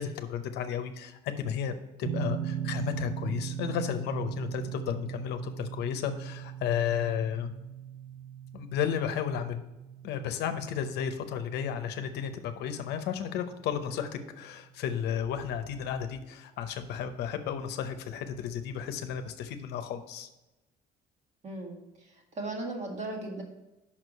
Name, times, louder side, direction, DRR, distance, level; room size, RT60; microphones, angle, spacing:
voice 1, 0.0-7.5 8.5-9.6 10.0-20.3, left 8 dB, 80° left, 8 dB, 0.7 m, -33 dB
sound 1, 2.0-14.9, right 10 dB, 65° right, 0.7 m, -40 dB
voice 2, 21.4-23.4, right 2 dB, 45° right, 1 dB, 1.8 m, -37 dB
5.8 x 4.7 x 6.4 m, 1.0 s
cardioid pair, 110°, 17 cm